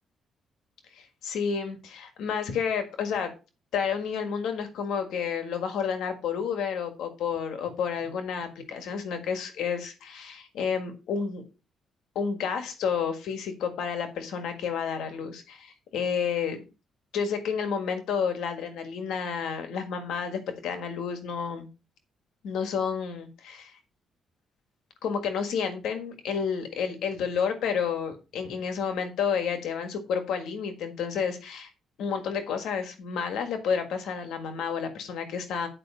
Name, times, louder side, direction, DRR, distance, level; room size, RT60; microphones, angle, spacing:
voice 1, 0.9-3.3 3.7-11.4 12.1-16.6 17.1-21.7 22.4-23.7 25.0-31.7 32.0-35.7, left 6 dB, 80° left, 7 dB, 1.6 m, -30 dB
9.9 x 5.0 x 5.0 m, 0.31 s
cardioid pair, 125°, 0 cm